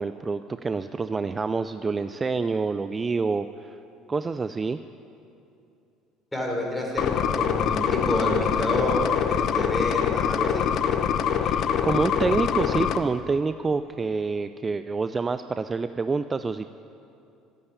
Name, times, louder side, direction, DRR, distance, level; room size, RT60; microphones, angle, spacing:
voice 1, 0.0-3.8 4.1-4.8 11.3-16.7, right 4 dB, 25° right, 11 dB, 0.4 m, -27 dB
voice 2, 6.3-10.6, left 1 dB, 10° left, -1 dB, 4.8 m, -28 dB
sound 1, 7.0-13.0, left 8 dB, 55° left, 0.8 m, -24 dB
14.0 x 8.7 x 9.9 m, 2.7 s
hypercardioid pair, 65°, 0 cm